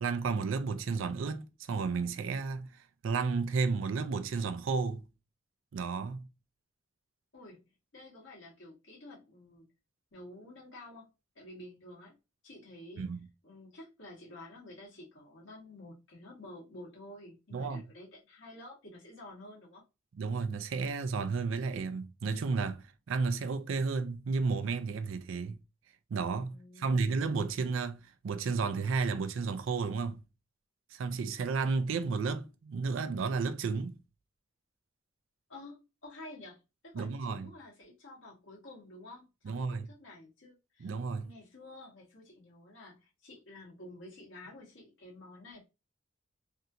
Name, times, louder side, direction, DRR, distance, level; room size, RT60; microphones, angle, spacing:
voice 1, 0.0-5.0 5.7-6.3 13.0-13.3 17.5-17.8 20.1-25.6 26.1-30.2 30.9-33.9 36.9-37.5 39.4-39.9 40.8-41.3, right 4 dB, 75° right, 0.4 m, -32 dB
voice 2, 7.3-7.6 7.9-9.7 10.1-11.1 11.4-12.2 12.4-13.1 13.4-19.8 26.5-27.3 35.5-40.9 41.2-45.6, left 1 dB, 65° left, 1.6 m, -50 dB
3.4 x 2.6 x 2.7 m
head